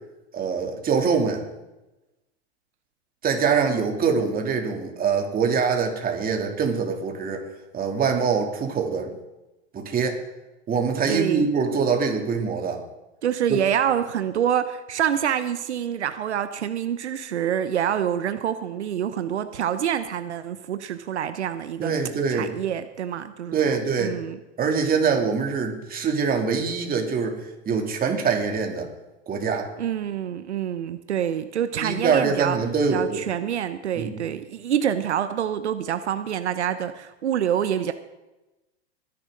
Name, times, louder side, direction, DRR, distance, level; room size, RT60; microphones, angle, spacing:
voice 1, 0.3-1.4 3.2-7.4 7.7-9.1 9.7-10.2 10.7-12.8 13.5-13.6 21.8-22.6 23.5-24.1 24.6-27.4 27.7-28.9 29.3-29.7 31.8-33.2 34.0-34.2, right 5 dB, 25° right, 2 dB, 2.8 m, -24 dB
voice 2, 11.1-11.5 13.2-22.0 22.3-24.4 29.8-32.6 32.9-37.9, right 9 dB, 90° right, 11 dB, 0.9 m, -26 dB
21.5 x 10.5 x 3.8 m, 1.0 s
hypercardioid pair, 110°, 33 cm